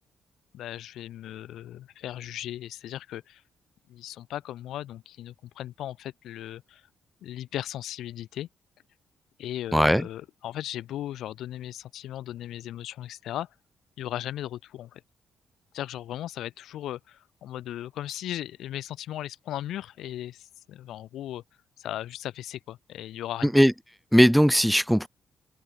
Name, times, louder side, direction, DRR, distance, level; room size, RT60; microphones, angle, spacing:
voice 1, 0.5-3.4 3.9-6.8 7.2-8.5 9.4-13.5 14.0-15.0 15.7-21.4 21.8-23.5, left 12 dB, 75° left, 1.8 m, -37 dB
voice 2, 9.7-10.0 23.4-23.7 24.1-25.1, equal, ahead, 0.6 m, -19 dB
supercardioid pair, 50°, 0 cm